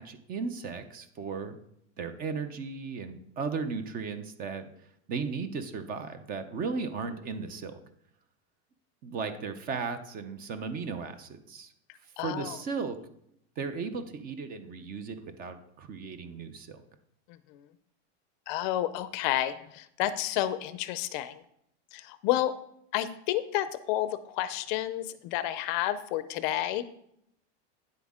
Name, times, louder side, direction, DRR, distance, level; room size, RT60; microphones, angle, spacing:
voice 1, 0.0-1.6 2.0-4.7 5.1-7.8 9.0-11.7 12.2-13.0 13.6-16.8, right 5 dB, 25° right, 11 dB, 0.6 m, -36 dB
voice 2, 12.2-12.6 18.5-21.4 21.9-22.5 22.9-26.9, left 13 dB, 45° left, 14 dB, 0.5 m, -30 dB
9.5 x 7.8 x 3.6 m, 0.74 s
supercardioid pair, 155°, 34 cm